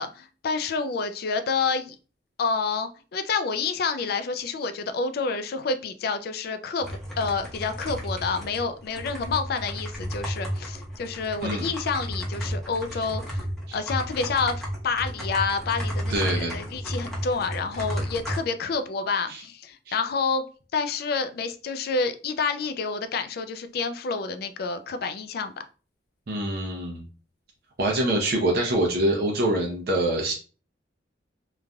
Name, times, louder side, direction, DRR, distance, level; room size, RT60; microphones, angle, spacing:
voice 1, 0.0-2.0 2.4-13.5 13.7-20.4 20.7-25.5, left 4 dB, 55° left, 0.3 m, -28 dB
sound 1, 6.8-18.4, equal, 5° left, 0.8 m, -33 dB
voice 2, 16.1-16.6 19.3-19.4 19.9-20.0 26.3-27.0 27.8-30.3, right 1 dB, 55° right, 0.6 m, -25 dB
3.1 x 2.4 x 2.2 m
head